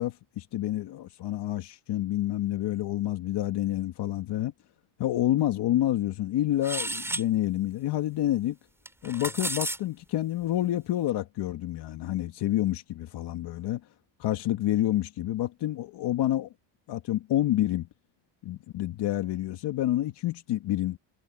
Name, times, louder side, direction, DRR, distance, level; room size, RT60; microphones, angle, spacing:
voice 1, 0.0-4.5 5.0-8.6 9.0-13.8 14.2-16.5 16.9-17.9 18.4-21.0, left 13 dB, 60° left, 2.5 m, -28 dB
sound 1, 6.6-7.3 8.8-9.8, right 1 dB, 5° right, 4.2 m, -32 dB
cardioid pair, 130°, 46 cm